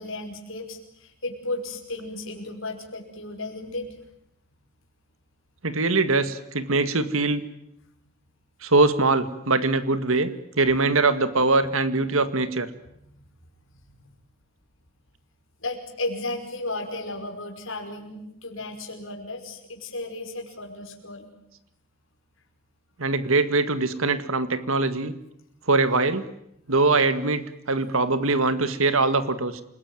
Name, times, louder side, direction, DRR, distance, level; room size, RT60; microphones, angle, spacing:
voice 1, 0.0-4.0 12.9-13.1 14.0-14.1 15.6-21.3, left 2 dB, 65° left, 2 dB, 5.4 m, -34 dB
voice 2, 5.6-7.4 8.6-10.3 10.6-12.7 23.0-25.1 25.7-26.3 26.7-29.6, right 3 dB, 75° right, 12 dB, 1.9 m, -22 dB
28.5 x 20.0 x 9.3 m, 0.77 s
head